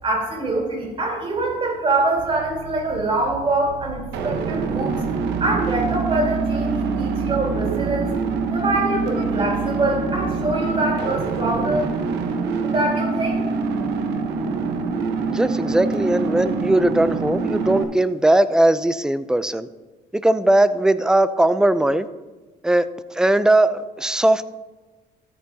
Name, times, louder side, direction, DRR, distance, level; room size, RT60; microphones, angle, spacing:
voice 1, 0.0-4.9 5.4-8.1 8.5-11.9 12.6-13.4, right 2 dB, 35° right, -2 dB, 3.6 m, -24 dB
sound 1, 2.2-10.7, right 9 dB, 50° right, 0.8 m, -34 dB
sound 2, 4.1-17.8, right 4 dB, 85° right, 1.1 m, -25 dB
voice 2, 15.3-19.7 20.2-22.1 22.6-22.9 23.1-24.5, right 1 dB, 5° right, 14 dB, 0.4 m, -19 dB
13.0 x 8.5 x 2.8 m, 1.2 s
cardioid pair, 110°, 17 cm